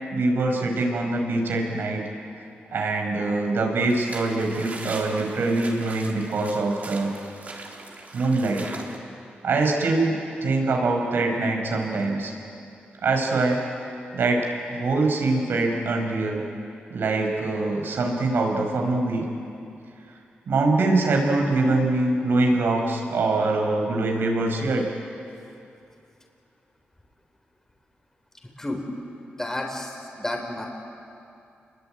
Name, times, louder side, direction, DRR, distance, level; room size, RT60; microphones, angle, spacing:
voice 1, 0.1-2.0 2.7-7.1 8.1-8.6 9.4-12.3 13.0-13.6 14.1-16.4 16.9-19.3 20.5-24.8, right 2 dB, 70° right, 2 dB, 5.5 m, -23 dB
sound 1, 3.9-9.0, right 3 dB, 45° right, 3.8 m, -40 dB
voice 2, 29.4-30.7, left 1 dB, 10° left, 3 dB, 4.3 m, -31 dB
29.0 x 22.5 x 9.2 m, 2.6 s
cardioid pair, 95°, 4 cm